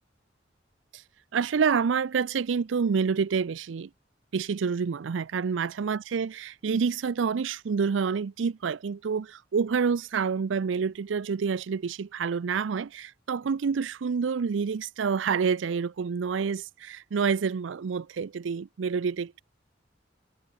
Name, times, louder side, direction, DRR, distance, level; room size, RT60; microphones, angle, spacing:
voice 1, 1.3-3.9 4.3-19.4, right 6 dB, 85° right, 0.5 m, -28 dB
head